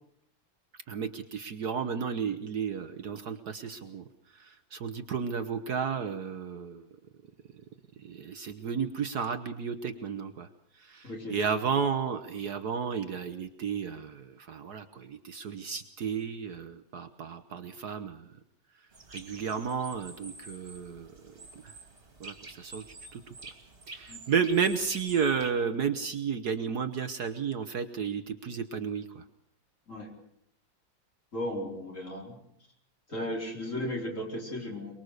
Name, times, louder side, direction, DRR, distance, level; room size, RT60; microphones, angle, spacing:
voice 1, 0.9-4.0 4.4-6.8 8.0-10.5 10.8-18.3 19.1-21.1 21.5-21.7 22.2-22.8 23.1-23.3 23.9-29.2, right 6 dB, 60° right, 9 dB, 1.5 m, -32 dB
voice 2, 11.0-11.4 24.1-24.2 29.9-30.1 31.3-32.4 33.1-34.9, left 1 dB, 40° left, 0 dB, 4.8 m, -35 dB
sound 1, 18.9-25.5, right 3 dB, 30° right, 2.7 m, -48 dB
23.5 x 22.0 x 6.6 m, 0.71 s
omnidirectional pair, 2.1 m